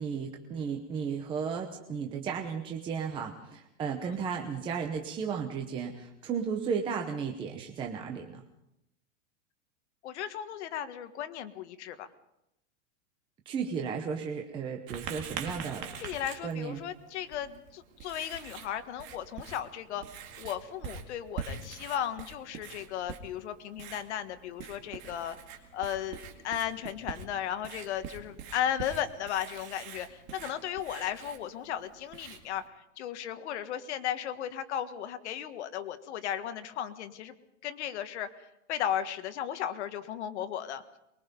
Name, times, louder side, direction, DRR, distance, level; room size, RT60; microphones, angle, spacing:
voice 1, 0.0-8.4 13.5-15.9 16.4-16.8, right 6 dB, 15° right, 3 dB, 0.9 m, -34 dB
voice 2, 10.0-12.1 15.4-15.6 16.0-20.0 20.4-25.4 25.7-37.3 37.6-40.8, left 10 dB, 60° left, 9 dB, 1.6 m, -35 dB
Writing, 14.9-32.7, right 7 dB, 30° right, 2.2 m, -45 dB
23.5 x 21.5 x 5.3 m, 0.85 s
supercardioid pair, 170°, 38 cm